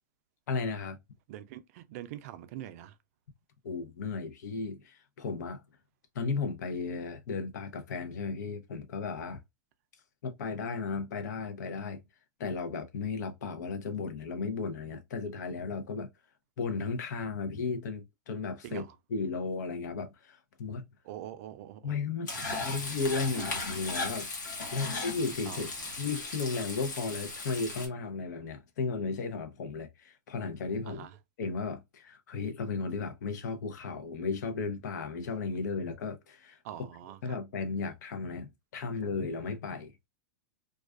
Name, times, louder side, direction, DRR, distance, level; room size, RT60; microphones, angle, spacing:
voice 1, 0.5-1.0 3.6-5.6 6.1-9.4 10.2-12.0 12.4-16.1 16.6-20.8 21.8-24.3 24.7-25.7 26.0-31.1 31.4-36.6 37.2-40.1, left 4 dB, 70° left, 0.7 m, -35 dB
voice 2, 1.3-3.0 18.6-19.0 21.0-22.0 22.3-22.9 23.3-23.5 25.5-25.9 30.9-31.1 36.6-37.4, right 12 dB, 55° right, 0.4 m, -44 dB
Frying (food), 22.3-27.9, left 3 dB, 90° left, 1.0 m, -37 dB
2.3 x 2.3 x 2.3 m
hypercardioid pair, 125°, 10 cm